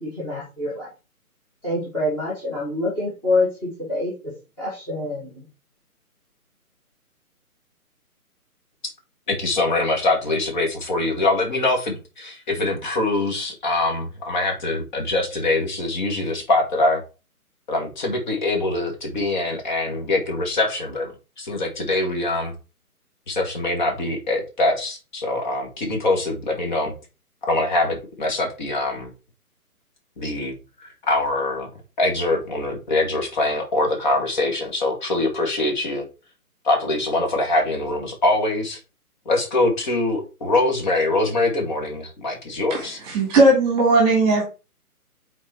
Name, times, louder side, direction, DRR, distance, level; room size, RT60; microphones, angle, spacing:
voice 1, 0.0-0.9 1.6-4.3 4.6-5.4, left 2 dB, 5° left, -8 dB, 1.4 m, -26 dB
voice 2, 9.3-17.0 17.7-21.1 21.4-22.5 23.3-26.9 27.5-29.1 30.2-30.5 30.8-31.7 32.0-36.0 36.6-38.8 39.3-43.0, left 2 dB, 30° left, 2 dB, 2.2 m, -23 dB
voice 3, 42.7-44.4, right 2 dB, 15° right, 0 dB, 1.8 m, -17 dB
8.4 x 4.2 x 4.4 m, 0.30 s
figure-of-eight pair, 145°, 44 cm